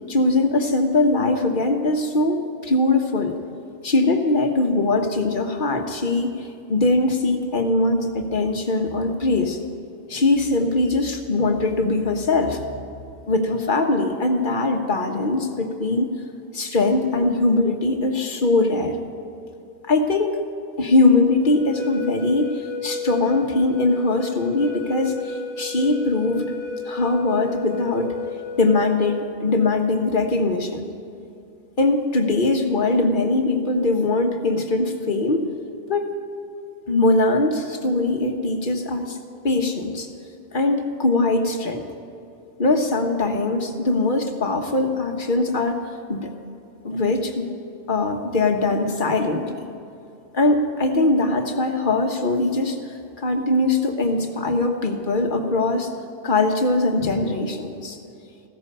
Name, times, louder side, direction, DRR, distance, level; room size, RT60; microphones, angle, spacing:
voice 1, 0.1-3.4 3.8-9.6 10.1-12.6 13.3-16.1 16.5-19.0 19.9-20.4 20.8-26.5 26.9-28.2 28.6-30.9 31.8-35.5 35.9-36.1 36.9-39.2 39.4-40.1 40.5-41.8 42.6-45.8 46.1-46.3 46.8-47.5 47.9-49.7 50.3-55.9 56.2-58.0, left 2 dB, 40° left, 4 dB, 1.4 m, -21 dB
sound 1, 21.4-29.2, left 3 dB, 30° right, 3.3 m, -32 dB
15.5 x 14.0 x 5.5 m, 2.6 s
omnidirectional pair, 1.3 m